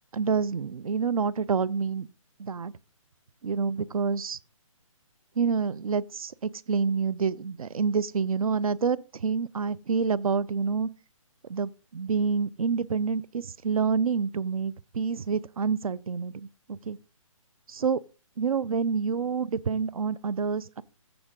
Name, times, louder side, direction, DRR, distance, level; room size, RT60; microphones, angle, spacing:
voice 1, 0.1-2.1 2.4-2.7 3.4-4.4 5.4-10.9 11.5-17.0 17.7-18.0 18.4-20.8, right 5 dB, 85° right, 0.6 m, -28 dB
15.0 x 6.2 x 3.7 m
hypercardioid pair, 170°, 18 cm